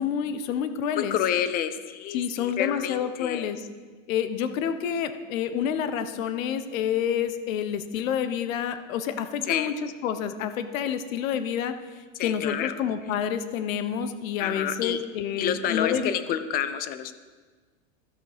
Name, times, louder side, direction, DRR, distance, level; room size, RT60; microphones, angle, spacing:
voice 1, 0.0-1.2 2.1-3.7 4.1-16.1, left 8 dB, 70° left, 10 dB, 1.1 m, -28 dB
voice 2, 1.0-3.5 9.5-9.7 12.2-12.7 14.4-15.0 15.4-17.2, left 10 dB, 25° left, 12 dB, 0.4 m, -29 dB
13.5 x 6.2 x 5.1 m, 1.4 s
supercardioid pair, 130°, 41 cm